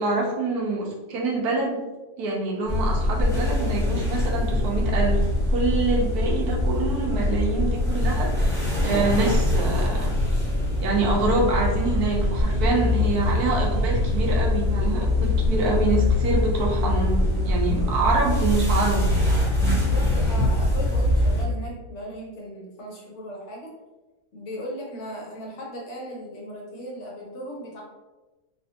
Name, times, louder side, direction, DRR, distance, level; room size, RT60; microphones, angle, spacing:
voice 1, 0.0-1.8 2.2-10.1 10.8-19.1, right 3 dB, 65° right, -1 dB, 1.1 m, -26 dB
sound 1, 2.7-21.4, left 1 dB, 5° left, 0.5 m, -23 dB
sound 2, 8.9-14.4, right 1 dB, 70° left, 0.5 m, -35 dB
voice 2, 12.5-13.1 19.6-23.7 24.3-27.8, equal, 55° left, -2 dB, 0.9 m, -37 dB
3.2 x 2.9 x 2.8 m, 1.1 s
omnidirectional pair, 2.0 m